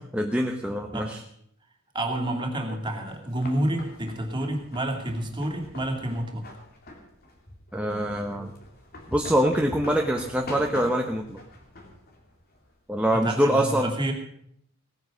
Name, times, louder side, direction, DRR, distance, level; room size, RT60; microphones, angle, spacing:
voice 1, 0.1-1.2 7.7-8.5 9.1-11.4 12.9-13.9, equal, 5° right, 2 dB, 0.9 m, -24 dB
voice 2, 1.9-6.4 13.1-14.1, right 1 dB, 25° right, 2 dB, 2.5 m, -29 dB
sound 1, 2.8-13.3, left 1 dB, 50° left, 2.8 m, -44 dB
18.0 x 9.6 x 6.4 m, 0.69 s
head